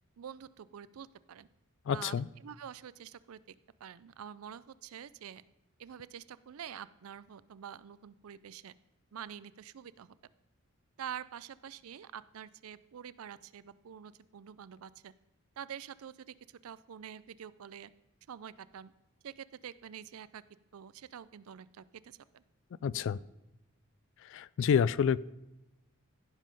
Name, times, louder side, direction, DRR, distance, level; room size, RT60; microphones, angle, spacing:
voice 1, 0.2-1.5 1.9-3.4 3.8-5.4 5.8-8.7 9.1-10.2 11.0-15.1 15.6-17.9 18.3-18.9 19.2-20.4 20.7-22.4, right 8 dB, 80° right, 18 dB, 0.4 m, -47 dB
voice 2, 1.9-2.3 22.8-23.2 24.2-25.2, left 7 dB, 60° left, 20 dB, 0.3 m, -28 dB
15.5 x 5.5 x 5.3 m, 0.97 s
head